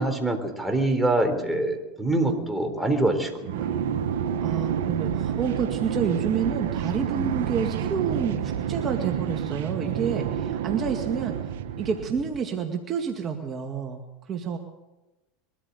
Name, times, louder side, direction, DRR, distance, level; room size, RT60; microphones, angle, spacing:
voice 1, 0.0-3.7, right 2 dB, 5° right, 4 dB, 3.8 m, -25 dB
sound 1, 3.4-12.4, right 9 dB, 75° right, 1.4 m, -29 dB
voice 2, 4.4-11.4 11.8-14.6, right 6 dB, 35° right, 3 dB, 2.1 m, -29 dB
22.5 x 14.0 x 8.3 m, 1.1 s
hypercardioid pair, 110°, 0 cm